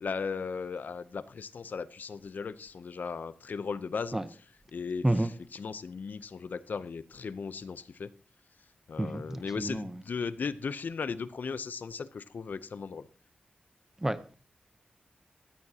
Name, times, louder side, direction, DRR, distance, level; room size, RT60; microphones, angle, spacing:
voice 1, 0.0-4.2 4.7-8.1 8.9-13.1, left 5 dB, 65° left, 0.6 m, -37 dB
voice 2, 9.0-10.0 14.0-14.4, right 1 dB, 15° right, 0.8 m, -30 dB
16.0 x 13.5 x 2.8 m
wide cardioid pair, 155°, 3 cm